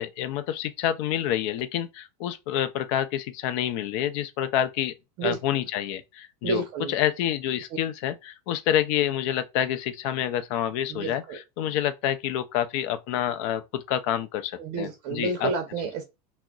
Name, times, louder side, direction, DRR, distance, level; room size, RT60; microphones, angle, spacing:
voice 1, 0.0-4.9 5.2-15.5, left 11 dB, 55° left, 0.5 m, -28 dB
voice 2, 6.4-6.9 10.9-11.4 14.6-16.0, right 4 dB, 45° right, 0.7 m, -30 dB
3.6 x 2.1 x 2.3 m
supercardioid pair, 140°, 20 cm